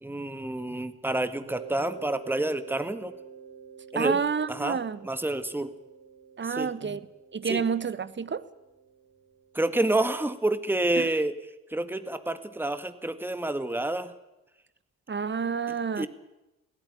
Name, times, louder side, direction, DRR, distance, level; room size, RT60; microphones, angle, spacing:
voice 1, 0.0-3.1 3.9-4.2 4.5-4.8 5.0-5.7 6.6-7.0 7.5-7.6 9.5-11.4 11.7-14.1 16.0-16.1, right 2 dB, 5° right, 1.8 m, -28 dB
Mallet percussion, 1.5-10.1, right 7 dB, 85° right, 6.4 m, -48 dB
voice 2, 3.9-5.0 6.4-7.0 7.3-8.4 11.0-11.1 15.1-16.1, right 6 dB, 25° right, 1.3 m, -29 dB
21.0 x 17.0 x 9.2 m
figure-of-eight pair, 45°, 42 cm